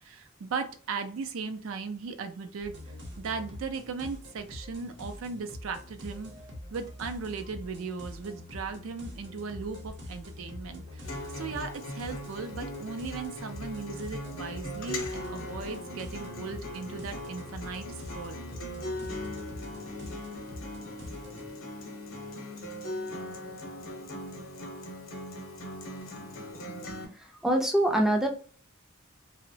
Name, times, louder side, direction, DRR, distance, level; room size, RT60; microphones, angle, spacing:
voice 1, 0.0-2.8 3.2-6.3 6.7-11.1 11.3-17.9 18.1-18.4, right 5 dB, 80° right, 7 dB, 0.4 m, -37 dB
sound 1, 2.6-21.5, left 1 dB, 55° right, 0.8 m, -44 dB
Acoustic guitar, 11.0-27.1, left 1 dB, 80° left, 0.8 m, -39 dB
voice 2, 27.1-28.3, right 1 dB, ahead, 2 dB, 0.3 m, -25 dB
2.8 x 2.1 x 2.6 m, 0.41 s
head